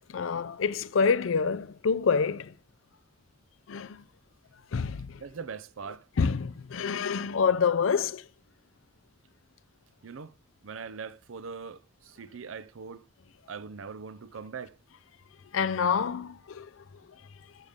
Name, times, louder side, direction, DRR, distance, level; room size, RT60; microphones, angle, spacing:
voice 1, 0.1-2.5 3.7-4.0 4.7-5.1 6.2-8.2 15.5-16.7, left 5 dB, 80° left, 0.5 m, -27 dB
voice 2, 5.2-6.0 10.0-10.3 10.6-13.0 13.5-14.7, right 5 dB, 85° right, 0.6 m, -41 dB
12.0 x 6.6 x 3.6 m
head